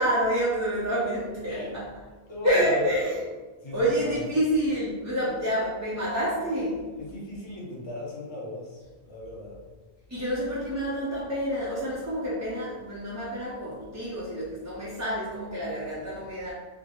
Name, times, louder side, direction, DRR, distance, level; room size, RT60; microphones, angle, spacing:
voice 1, 0.0-1.8 2.4-3.2 3.7-6.8 10.1-16.5, equal, 20° right, -8 dB, 0.4 m, -28 dB
voice 2, 2.3-2.9 3.6-4.2 5.2-5.3 7.0-9.6, left 2 dB, 30° left, -4 dB, 0.7 m, -36 dB
3.6 x 2.0 x 3.6 m, 1.3 s
omnidirectional pair, 1.1 m